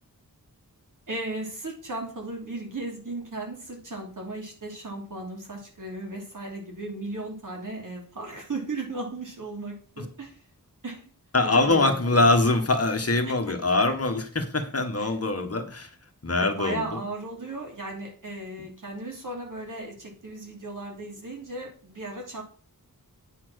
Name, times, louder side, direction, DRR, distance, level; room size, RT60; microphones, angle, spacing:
voice 1, 1.1-10.4 10.8-11.1 11.4-12.3 13.2-13.4 15.0-15.1 16.4-22.4, right 2 dB, 60° right, 0 dB, 3.0 m, -36 dB
voice 2, 11.3-15.9 16.2-17.0, left 2 dB, 40° left, 5 dB, 1.3 m, -23 dB
9.1 x 4.3 x 6.3 m, 0.41 s
wide cardioid pair, 75°, 35 cm